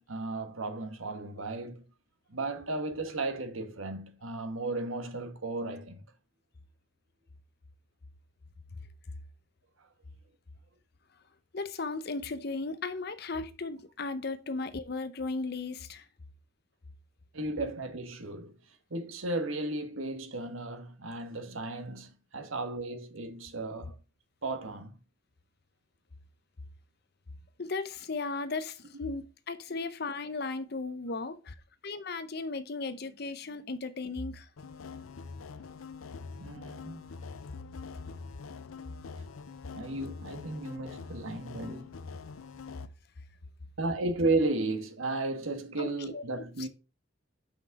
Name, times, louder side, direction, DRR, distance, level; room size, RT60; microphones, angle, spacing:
voice 1, 0.0-1.8 2.3-6.0 9.8-9.9 17.3-18.6 18.9-23.9 24.4-24.9 36.4-37.0 39.7-41.9 43.8-46.7, right 2 dB, 80° right, 1.4 m, -34 dB
voice 2, 11.5-16.0 27.6-31.6 31.8-34.5 45.8-46.7, left 3 dB, 50° left, 0.7 m, -36 dB
sound 1, 34.6-42.9, left 5 dB, 90° left, 0.6 m, -45 dB
6.1 x 5.3 x 4.7 m
head